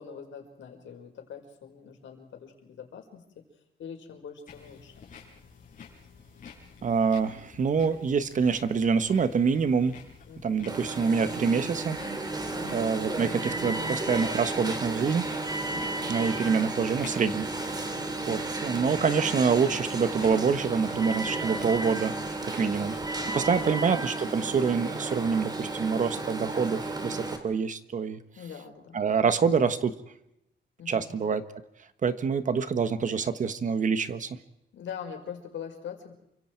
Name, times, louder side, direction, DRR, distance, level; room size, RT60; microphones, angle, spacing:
voice 1, 0.0-3.2 3.8-5.0 10.3-10.7 12.4-12.8 15.7-16.1 21.4-21.8 22.6-23.8 28.4-29.0 29.4-29.5 30.8-31.1 34.7-36.1, left 7 dB, 80° left, 4 dB, 5.2 m, -43 dB
sound 1, 4.5-23.7, left 6 dB, 45° left, 6.8 m, -50 dB
voice 2, 6.8-10.0 10.4-12.0 12.7-15.2 16.1-17.9 18.3-22.1 22.4-22.9 23.3-28.2 28.9-29.9 30.9-31.4 32.0-34.4, right 6 dB, 40° right, 12 dB, 1.4 m, -26 dB
Alarm, 10.7-27.4, right 2 dB, 20° right, 3.0 m, -33 dB
28.5 x 25.0 x 4.7 m, 0.83 s
wide cardioid pair, 165°, 19 cm